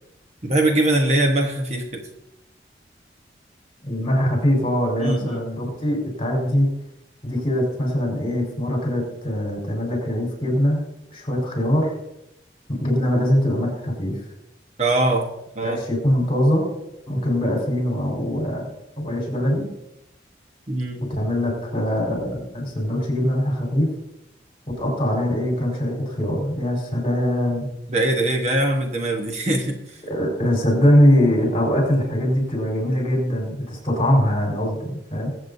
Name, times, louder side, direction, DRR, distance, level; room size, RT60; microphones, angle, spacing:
voice 1, 0.4-2.0 5.0-5.4 14.8-15.3 15.5-15.8 20.7-21.1 27.9-30.0, right 1 dB, 35° right, 2 dB, 1.1 m, -22 dB
voice 2, 3.9-6.7 7.2-10.8 11.1-11.9 12.7-14.2 15.6-16.7 17.1-18.7 19.0-19.6 21.1-23.9 24.7-27.7 30.1-35.3, equal, 30° left, -1 dB, 4.4 m, -22 dB
22.0 x 8.1 x 2.7 m, 0.84 s
head